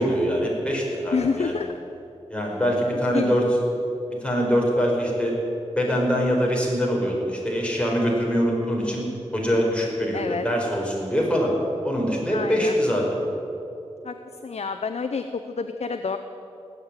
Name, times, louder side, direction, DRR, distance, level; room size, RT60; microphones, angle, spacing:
voice 1, 0.0-1.6 2.3-3.5 4.2-5.3 5.7-9.0 9.3-11.5 11.8-13.2, equal, 10° left, -2 dB, 4.7 m, -23 dB
voice 2, 1.1-1.7 3.1-3.5 10.1-10.4 12.3-12.7 14.0-14.2 14.4-16.2, left 5 dB, 60° left, 7 dB, 0.7 m, -28 dB
18.0 x 7.4 x 9.8 m, 2.8 s
wide cardioid pair, 65°, 12 cm